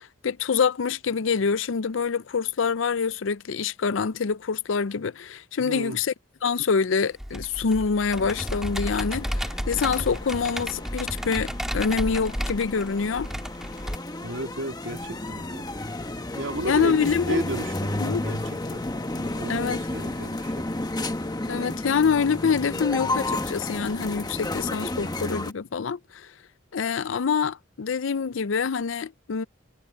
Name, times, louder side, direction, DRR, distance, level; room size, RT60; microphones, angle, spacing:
voice 1, 0.0-6.1 6.4-13.3 16.6-17.4 18.0-18.3 19.5-19.8 21.5-26.3 26.7-29.4, left 5 dB, 80° left, 0.5 m, -26 dB
voice 2, 5.6-6.0 14.2-15.7 16.1-20.7, right 1 dB, 90° right, 3.0 m, -34 dB
Computer keyboard, 7.2-13.9, equal, ahead, 2.1 m, -32 dB
sound 1, 8.1-25.5, left 2 dB, 20° left, 1.2 m, -32 dB
head